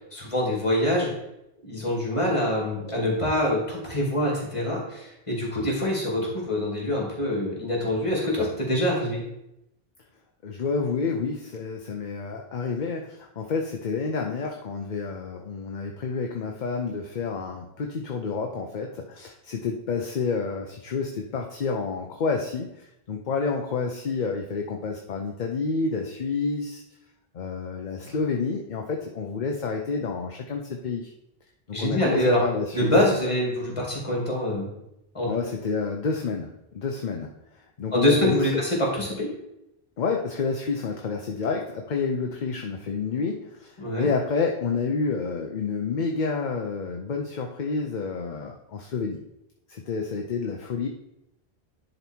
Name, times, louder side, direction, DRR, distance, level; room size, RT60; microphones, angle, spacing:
voice 1, 0.1-1.1 1.6-9.2 28.0-28.1 31.7-32.4 32.7-34.7 35.1-35.3 37.9-39.3 43.8-44.1, left 1 dB, 30° left, -3 dB, 2.7 m, -25 dB
voice 2, 10.4-26.8 27.3-31.1 31.7-32.9 35.2-37.3 37.8-38.7 40.0-49.2 49.7-50.9, left 4 dB, 50° left, 2 dB, 0.8 m, -29 dB
10.5 x 4.0 x 4.5 m, 0.86 s
omnidirectional pair, 1.0 m